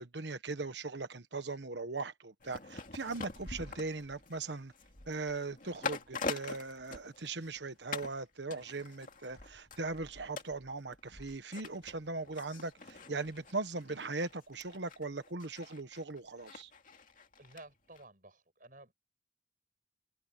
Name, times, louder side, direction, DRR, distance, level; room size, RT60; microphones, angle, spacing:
voice 1, 0.0-4.7 5.1-16.7, right 3 dB, 75° right, 1.2 m, -39 dB
sound 1, 2.4-7.6 7.9-8.2 8.5-17.6 17.9-18.0, left 4 dB, 45° left, 2.5 m, -45 dB
voice 2, 17.4-18.9, right 2 dB, 50° right, 7.7 m, -54 dB
head